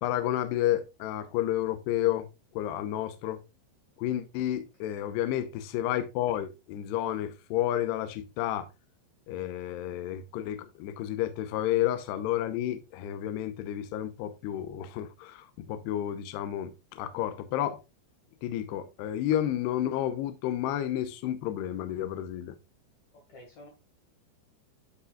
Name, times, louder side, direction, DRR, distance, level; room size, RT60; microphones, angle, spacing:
voice 1, 0.0-2.3 2.5-3.4 4.0-8.7 9.3-17.8 18.4-22.6, left 12 dB, 80° left, 2.6 m, -31 dB
voice 2, 23.1-23.7, left 1 dB, 50° left, 2.5 m, -52 dB
11.5 x 5.5 x 2.4 m
omnidirectional pair, 5.4 m